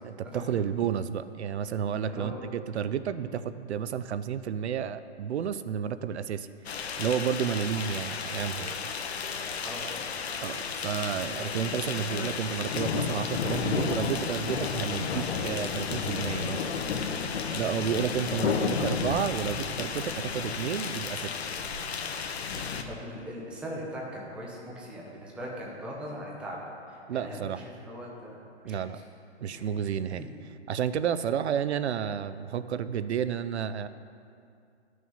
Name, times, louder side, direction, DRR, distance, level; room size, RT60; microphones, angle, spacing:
voice 1, 0.0-6.5 7.0-8.9 10.4-16.7 17.5-21.3 27.1-27.6 28.6-29.0 29.4-30.2 30.7-33.9, right 8 dB, 75° right, 13 dB, 0.5 m, -31 dB
voice 2, 2.1-2.4 2.9-3.3 9.6-10.3 22.4-26.6 26.9-29.0 29.5-29.7 30.1-30.3, equal, 5° right, -3 dB, 0.7 m, -41 dB
sound 1, 6.6-22.8, left 6 dB, 65° left, 1.0 m, -32 dB
12.5 x 6.3 x 5.6 m, 2.4 s
hypercardioid pair, 160°, 34 cm